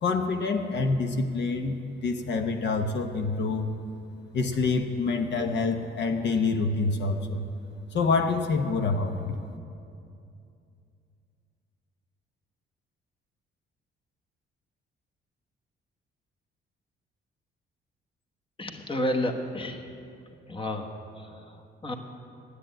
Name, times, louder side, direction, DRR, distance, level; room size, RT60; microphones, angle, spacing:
voice 1, 0.0-3.7 4.3-7.5 7.9-9.3, left 4 dB, 60° left, 5 dB, 0.9 m, -27 dB
voice 2, 18.6-19.8 20.5-21.9, left 1 dB, 25° left, 5 dB, 1.2 m, -31 dB
10.0 x 8.3 x 9.0 m, 2.6 s
cardioid pair, 90°, 20 cm